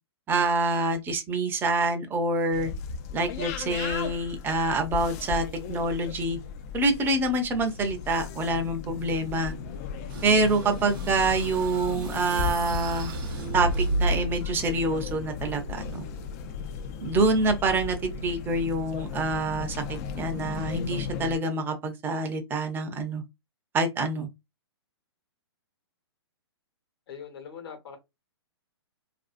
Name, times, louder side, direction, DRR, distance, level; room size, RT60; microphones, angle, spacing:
voice 1, 0.3-2.7 3.1-6.4 6.7-9.5 10.2-13.1 13.5-16.0 17.0-23.2 23.7-24.3, right 2 dB, 15° right, 0.5 m, -26 dB
sound 1, 2.5-21.4, left 6 dB, 35° left, 0.3 m, -36 dB
sound 2, 10.1-14.4, right 2 dB, 55° right, 0.7 m, -32 dB
voice 2, 27.1-28.0, left 7 dB, 60° left, 1.1 m, -41 dB
2.5 x 2.3 x 2.4 m
hypercardioid pair, 125°, 14 cm